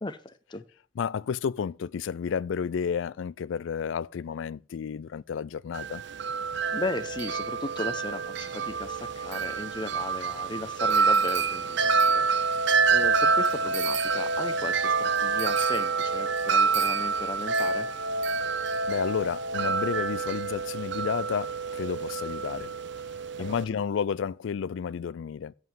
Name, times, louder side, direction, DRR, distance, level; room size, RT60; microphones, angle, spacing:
voice 1, 0.0-0.6 6.7-12.2 12.9-17.9 23.4-23.8, left 2 dB, 25° left, 0.7 m, -36 dB
voice 2, 1.0-6.0 18.9-22.7 23.4-25.5, left 7 dB, 70° left, 0.3 m, -31 dB
Wind chime, 5.7-23.6, right 5 dB, 60° right, 0.5 m, -27 dB
7.9 x 7.4 x 6.1 m
head